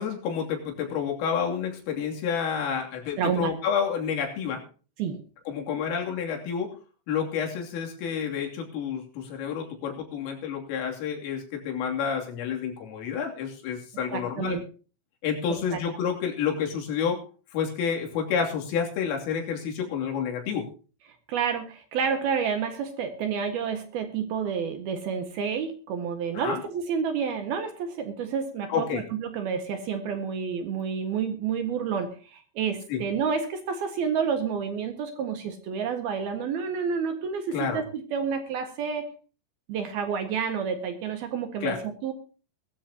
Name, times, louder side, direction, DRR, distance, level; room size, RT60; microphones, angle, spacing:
voice 1, 0.0-4.6 5.5-6.8 7.1-14.6 15.2-17.2 17.5-20.6 26.4-26.6 28.7-29.0 32.9-33.0 37.5-37.8 41.6-41.8, left 7 dB, 85° left, 1 dB, 5.5 m, -29 dB
voice 2, 3.2-3.5 5.0-5.2 14.1-14.6 15.5-15.8 21.3-39.1 39.7-42.1, right 6 dB, 60° right, 6 dB, 3.0 m, -29 dB
20.5 x 13.5 x 2.9 m, 0.36 s
omnidirectional pair, 5.7 m